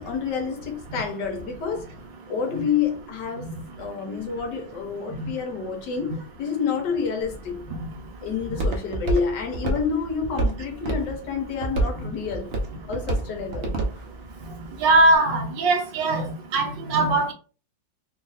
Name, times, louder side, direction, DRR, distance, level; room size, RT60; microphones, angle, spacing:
voice 1, 0.0-1.9 2.3-3.5 3.8-7.7 8.2-12.5 12.9-13.8, left 6 dB, 65° left, 1.4 m, -28 dB
Walk footsteps, 7.2-15.2, right 2 dB, 50° right, 0.7 m, -30 dB
voice 2, 14.8-17.3, right 2 dB, 75° right, 1.4 m, -20 dB
3.4 x 2.4 x 4.0 m
omnidirectional pair, 2.1 m